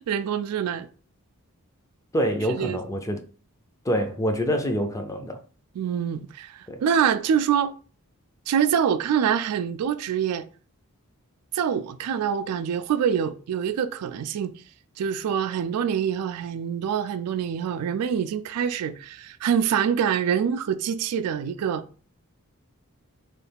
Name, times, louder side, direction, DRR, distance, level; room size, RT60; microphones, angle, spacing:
voice 1, 0.1-0.9 2.6-2.8 5.8-7.8 8.5-10.4 11.5-14.5 15.0-21.8, right 8 dB, 90° right, 0.3 m, -25 dB
voice 2, 2.1-3.2 3.8-5.4 6.7-6.8, equal, 15° left, 0.4 m, -26 dB
3.1 x 2.3 x 3.3 m
head